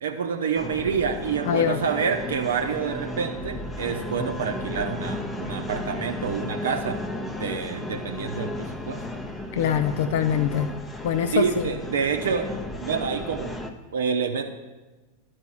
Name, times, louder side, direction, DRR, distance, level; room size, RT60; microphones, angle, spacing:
voice 1, 0.0-7.0 7.4-9.3 11.3-12.5 12.8-13.5 13.9-14.4, right 6 dB, 65° right, 4 dB, 0.7 m, -27 dB
sound 1, 0.6-13.7, left 1 dB, 10° left, 0.7 m, -34 dB
voice 2, 1.5-1.8 9.5-10.7 11.0-11.7, left 8 dB, 55° left, 9 dB, 0.4 m, -24 dB
11.5 x 4.5 x 6.0 m, 1.2 s
figure-of-eight pair, 90°, 0 cm